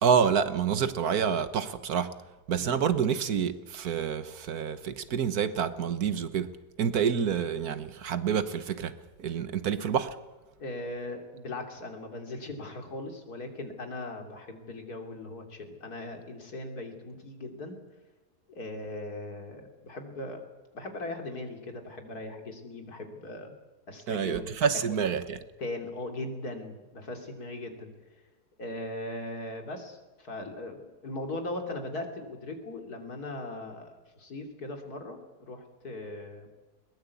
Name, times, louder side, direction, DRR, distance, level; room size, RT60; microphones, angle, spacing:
voice 1, 0.0-2.2 2.5-10.2 24.1-25.4, right 7 dB, 70° right, 1.6 m, -28 dB
voice 2, 10.6-17.8 18.5-20.4 20.7-23.5 23.9-24.6 25.6-28.2 28.6-35.2 35.5-36.5, left 2 dB, 70° left, 3.5 m, -39 dB
21.5 x 19.5 x 8.4 m
omnidirectional pair, 1.7 m